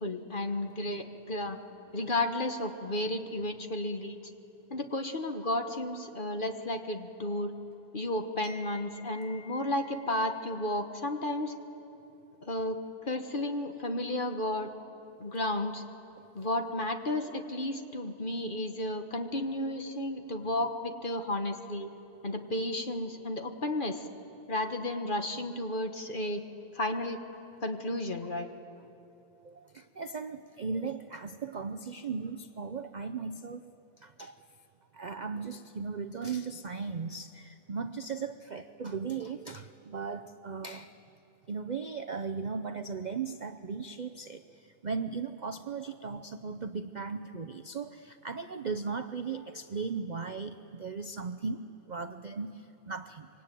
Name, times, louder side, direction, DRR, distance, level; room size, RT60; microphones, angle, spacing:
voice 1, 0.0-1.6 1.9-4.2 4.7-7.5 7.9-11.5 12.4-14.7 15.2-15.8 16.3-21.9 22.2-24.1 24.5-26.4 26.7-27.2 27.6-28.5, left 1 dB, 35° left, 5 dB, 1.4 m, -33 dB
voice 2, 8.4-8.8 9.1-9.7 16.4-16.5 29.4-33.7 34.0-34.4 34.9-40.9 41.5-51.6 51.9-53.3, right 5 dB, 60° right, 9 dB, 0.4 m, -37 dB
26.0 x 24.0 x 9.2 m, 2.9 s
omnidirectional pair, 1.7 m